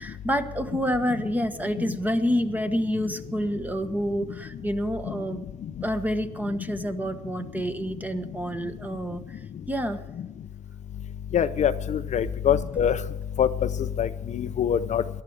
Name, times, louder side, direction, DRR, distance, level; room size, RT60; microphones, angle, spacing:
voice 1, 0.0-9.4 9.7-10.0, equal, 10° right, 9 dB, 1.3 m, -28 dB
voice 2, 11.3-13.0 13.4-13.5 14.0-14.1 14.3-15.0, left 9 dB, 45° left, 11 dB, 0.6 m, -23 dB
19.0 x 12.5 x 4.7 m, 1.0 s
cardioid pair, 110°, 17 cm